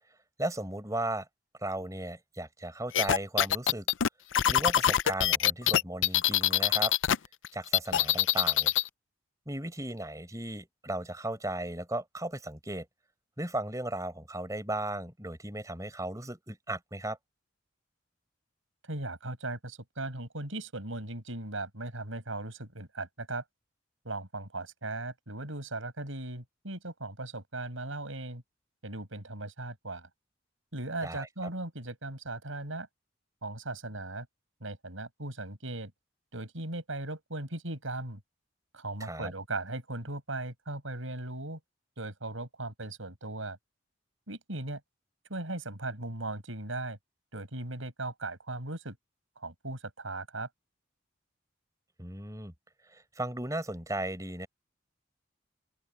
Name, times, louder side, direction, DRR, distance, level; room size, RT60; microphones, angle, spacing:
voice 1, 0.4-1.3 1.6-3.9 4.5-6.9 7.5-8.7 9.5-12.9 13.4-17.2 31.0-31.3 39.0-39.3 52.0-52.5 52.9-54.5, right 1 dB, 15° right, 4.6 m, -36 dB
sound 1, 2.9-7.2 7.4-8.9, left 11 dB, 75° left, 0.5 m, -24 dB
voice 2, 18.9-23.4 24.0-28.4 28.8-30.1 30.7-32.9 33.4-34.3 34.6-35.9 36.3-38.2 38.7-41.6 42.0-43.6 44.3-44.8 45.3-47.0 47.3-49.0 49.4-50.5, right 2 dB, 90° right, 6.8 m, -38 dB
open air
head